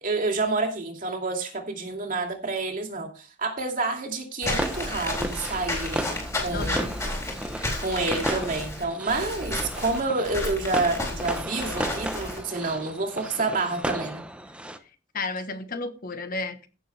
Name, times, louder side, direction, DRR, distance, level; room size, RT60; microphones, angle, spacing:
voice 1, 0.0-6.1 6.4-6.9 7.8-14.2, right 3 dB, 45° right, 3 dB, 2.5 m, -28 dB
Walk footsteps / Squeak, 4.4-12.4, left 1 dB, 15° left, 4.0 m, -32 dB
sound 1, 4.5-14.8, right 1 dB, 5° right, 0.9 m, -34 dB
voice 2, 6.5-6.9 15.1-16.7, left 3 dB, 50° left, 9 dB, 1.3 m, -32 dB
16.0 x 7.2 x 3.4 m, 0.35 s
head